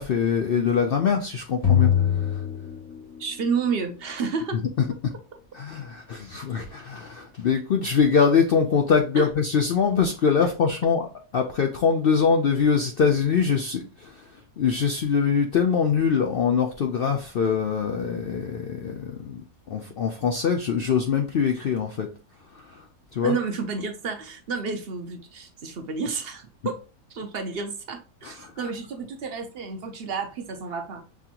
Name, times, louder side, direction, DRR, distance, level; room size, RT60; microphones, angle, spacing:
voice 1, 0.0-1.9 5.5-11.1 11.3-14.1 14.6-19.4 19.7-22.1 23.1-23.3 28.2-28.3, left 6 dB, 90° left, 0.5 m, -23 dB
sound 1, 1.6-3.4, left 9 dB, 25° left, 1.3 m, -22 dB
voice 2, 3.2-4.6 9.2-9.3 23.2-26.8 27.1-31.0, right 5 dB, 55° right, 0.7 m, -30 dB
6.0 x 2.8 x 2.5 m
omnidirectional pair, 1.6 m